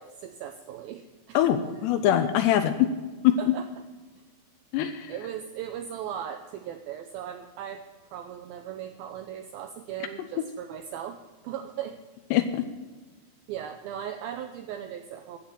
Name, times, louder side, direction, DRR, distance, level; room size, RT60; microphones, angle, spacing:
voice 1, 0.0-1.4 3.4-3.7 5.1-7.8 8.1-11.2 11.4-12.0 13.5-15.4, right 9 dB, 80° right, 7 dB, 2.2 m, -38 dB
voice 2, 1.3-2.9 3.2-3.4 4.7-5.1 12.3-12.6, left 11 dB, 80° left, 7 dB, 2.8 m, -23 dB
14.0 x 7.8 x 7.5 m, 1.3 s
omnidirectional pair, 5.0 m